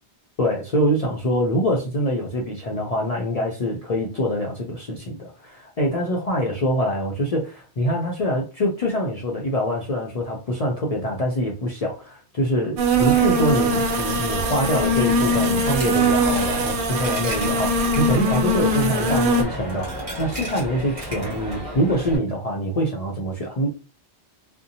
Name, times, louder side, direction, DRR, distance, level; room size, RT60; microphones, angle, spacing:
voice 1, 0.4-23.7, equal, 55° left, -1 dB, 0.4 m, -24 dB
sound 1, 12.8-19.4, right 1 dB, 60° right, 0.6 m, -21 dB
Coin (dropping), 13.0-22.2, equal, 35° right, 1.1 m, -33 dB
2.6 x 2.1 x 2.6 m, 0.32 s
omnidirectional pair, 1.1 m